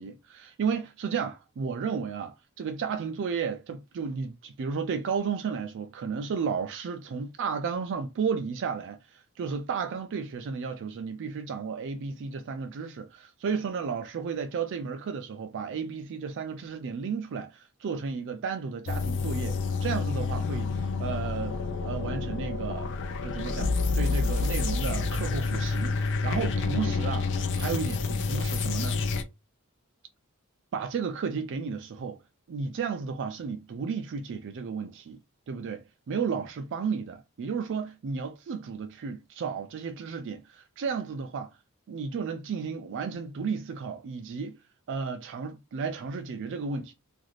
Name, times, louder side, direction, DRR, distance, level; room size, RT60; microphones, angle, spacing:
voice 1, 0.0-22.9 23.2-27.3 27.6-29.0 30.7-32.2 32.5-35.2 35.5-41.5 41.9-44.6 44.9-46.9, right 6 dB, 55° right, 0.3 m, -33 dB
sound 1, 18.9-29.2, left 4 dB, 55° left, 0.4 m, -28 dB
2.6 x 2.4 x 3.1 m
head